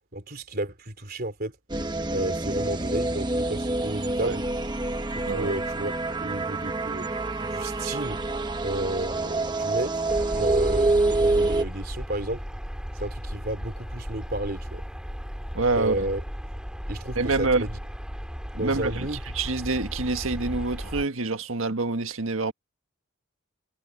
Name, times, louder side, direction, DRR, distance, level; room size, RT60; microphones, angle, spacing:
voice 1, 0.1-1.5 2.1-4.5 5.1-5.9 6.2-7.1 7.4-8.2 8.6-10.0 10.3-12.4 12.9-14.8 15.8-16.2 16.9-17.8 18.6-19.2, right 1 dB, 45° right, 3.5 m, -32 dB
sound 1, 1.7-11.6, right 2 dB, 20° right, 1.1 m, -27 dB
sound 2, 10.1-21.0, equal, 5° right, 2.3 m, -35 dB
voice 2, 15.5-16.1 17.1-17.7 18.5-19.1 19.3-22.5, right 3 dB, 75° right, 1.6 m, -26 dB
head